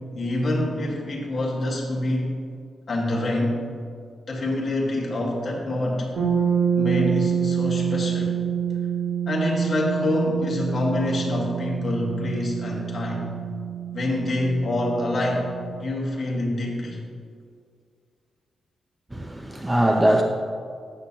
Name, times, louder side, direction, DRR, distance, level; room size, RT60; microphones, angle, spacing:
voice 1, 0.1-2.3 2.9-3.6 4.3-6.1 6.7-8.4 9.3-13.3 13.9-15.5 15.8-17.0, left 1 dB, 40° left, -2 dB, 1.7 m, -26 dB
sound 1, 6.2-15.9, right 8 dB, 85° right, 2.3 m, -27 dB
voice 2, 19.1-20.2, right 1 dB, 10° right, 2 dB, 0.5 m, -21 dB
12.0 x 8.2 x 2.9 m, 2.2 s
wide cardioid pair, 155°, 0 cm